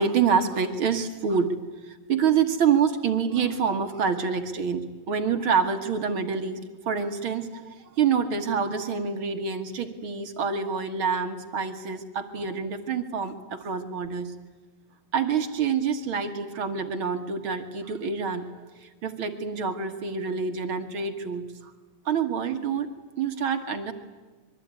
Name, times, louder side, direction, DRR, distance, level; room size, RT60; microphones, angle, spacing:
voice 1, 0.0-1.5 1.8-14.3 15.1-21.7 22.0-23.9, right 6 dB, 50° right, 7 dB, 1.6 m, -27 dB
25.5 x 23.0 x 9.6 m, 1.3 s
omnidirectional pair, 4.3 m